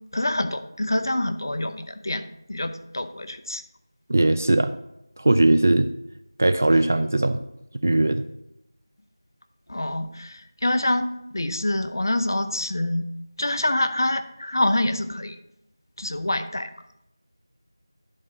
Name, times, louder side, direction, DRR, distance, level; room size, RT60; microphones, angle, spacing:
voice 1, 0.1-2.2 2.5-3.6 9.7-13.1 13.4-15.4 16.0-16.7, left 1 dB, 55° left, 10 dB, 0.7 m, -26 dB
voice 2, 4.1-4.7 5.2-5.9 6.4-7.4 7.8-8.2, right 2 dB, 35° right, 11 dB, 0.3 m, -19 dB
10.5 x 4.8 x 5.8 m, 0.85 s
figure-of-eight pair, 175°, 2 cm